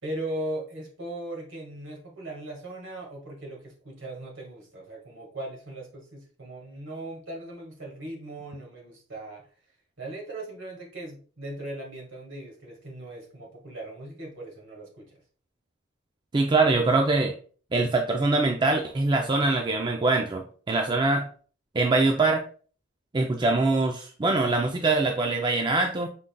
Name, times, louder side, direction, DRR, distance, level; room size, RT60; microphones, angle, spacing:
voice 1, 0.0-9.4 10.0-15.2, right 1 dB, 65° right, 0 dB, 1.7 m, -38 dB
voice 2, 16.3-17.3 17.7-21.3 21.7-22.4 23.1-26.1, right 3 dB, 25° right, 3 dB, 0.4 m, -23 dB
5.4 x 3.7 x 2.2 m, 0.41 s
head